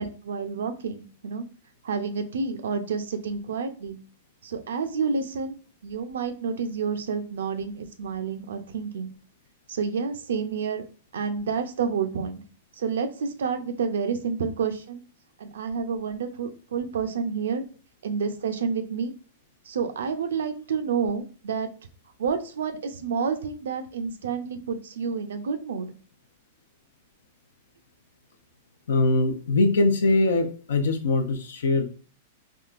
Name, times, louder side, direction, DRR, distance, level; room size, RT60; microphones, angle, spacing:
voice 1, 0.0-1.4 1.8-4.0 4.4-5.5 5.8-9.1 9.7-10.8 11.1-12.4 12.8-15.0 15.4-17.6 18.0-19.1 19.7-21.7 22.2-25.9, right 5 dB, 90° right, 8 dB, 0.5 m, -29 dB
voice 2, 28.9-31.8, left 2 dB, 85° left, 7 dB, 0.6 m, -22 dB
3.6 x 2.2 x 2.4 m, 0.39 s
hypercardioid pair, 140°, 0 cm